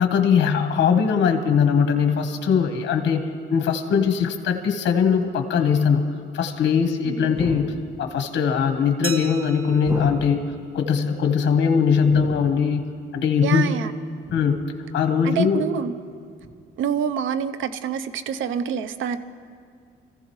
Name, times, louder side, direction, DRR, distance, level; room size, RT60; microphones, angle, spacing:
voice 1, 0.0-10.4 10.7-13.7 14.3-15.6, left 6 dB, 65° left, 6 dB, 1.2 m, -21 dB
voice 2, 7.0-7.4 13.4-13.9 15.2-15.9 16.8-19.2, right 7 dB, 75° right, 12 dB, 0.8 m, -26 dB
sound 1, 7.4-8.2 9.9-10.6 12.1-12.8 14.2-14.8 16.4-16.5, right 1 dB, 15° right, 1.3 m, -34 dB
Glass, 9.0-11.5, right 5 dB, 50° right, 1.0 m, -38 dB
25.5 x 15.0 x 3.2 m, 2.2 s
cardioid pair, 90°, 20 cm